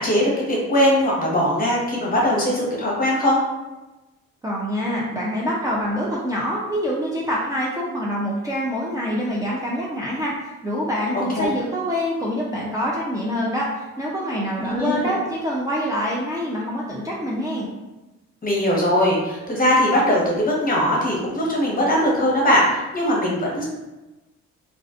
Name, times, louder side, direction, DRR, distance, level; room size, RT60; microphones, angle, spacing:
voice 1, 0.0-3.4 11.1-11.5 14.6-15.1 18.4-23.7, equal, 30° left, -3 dB, 0.9 m, -20 dB
voice 2, 4.4-17.7, equal, 10° right, -6 dB, 0.4 m, -25 dB
2.4 x 2.4 x 2.3 m, 1.1 s
cardioid pair, 90°, 30 cm